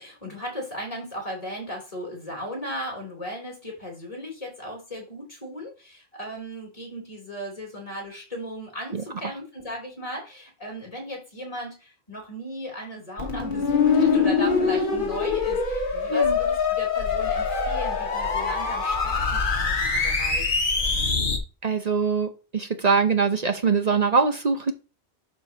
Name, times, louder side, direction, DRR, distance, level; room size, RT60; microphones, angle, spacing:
voice 1, 0.0-20.6, equal, 35° left, 3.3 m, -36 dB
sound 1, 13.2-21.4, left 5 dB, 55° left, 1.4 m, -24 dB
voice 2, 21.6-24.7, right 5 dB, 45° right, 0.8 m, -23 dB
11.5 x 5.0 x 2.8 m
omnidirectional pair, 1.1 m